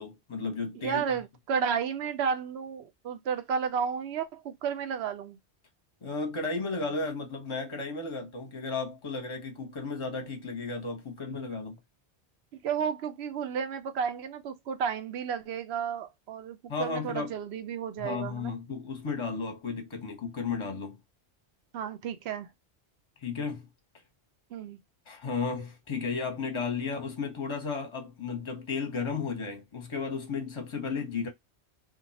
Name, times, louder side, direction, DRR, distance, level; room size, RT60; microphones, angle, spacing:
voice 1, 0.0-1.0 6.0-11.8 16.7-17.3 18.0-21.0 23.2-23.7 25.1-31.3, left 4 dB, 30° left, 0.8 m, -34 dB
voice 2, 0.8-5.4 12.5-18.5 21.7-22.5 24.5-24.8, right 7 dB, 75° right, 0.8 m, -32 dB
2.6 x 2.2 x 3.9 m
omnidirectional pair, 1.1 m